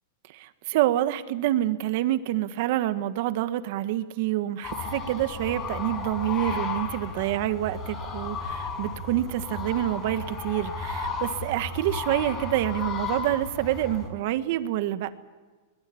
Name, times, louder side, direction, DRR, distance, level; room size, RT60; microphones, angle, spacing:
voice 1, 0.3-15.1, right 14 dB, 55° right, 11 dB, 1.5 m, -27 dB
sound 1, 4.6-14.1, left 4 dB, 25° left, 6.0 m, -34 dB
22.0 x 20.5 x 8.7 m, 1.4 s
supercardioid pair, 150°, 0 cm